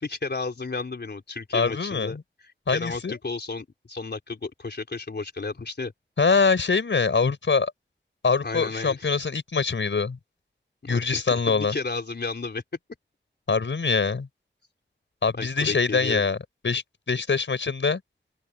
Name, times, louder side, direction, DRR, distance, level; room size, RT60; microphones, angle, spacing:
voice 1, 0.0-2.2 2.4-5.9 8.4-9.1 10.8-12.6 15.4-16.4, left 3 dB, 60° left, 3.8 m, -33 dB
voice 2, 1.5-2.2 2.7-3.2 6.2-7.7 8.2-10.2 10.9-11.7 13.5-14.3 15.2-16.4 16.6-18.0, left 4 dB, 85° left, 4.8 m, -24 dB
open air
wide cardioid pair, 75°, 19 cm